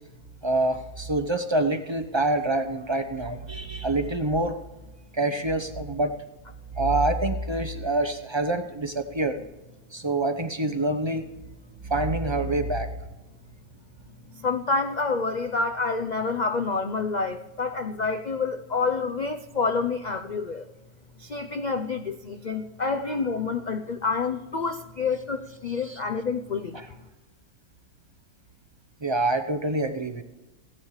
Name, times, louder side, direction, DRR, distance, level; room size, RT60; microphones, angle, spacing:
voice 1, 0.4-4.6 5.1-6.1 6.7-9.4 9.9-11.3 11.8-12.9 25.7-26.0 26.7-26.9 29.0-30.2, right 2 dB, 40° right, 8 dB, 0.4 m, -26 dB
voice 2, 14.4-20.7 21.2-26.8, left 4 dB, 75° left, 6 dB, 0.4 m, -28 dB
16.5 x 10.5 x 4.8 m, 1.1 s
omnidirectional pair, 1.7 m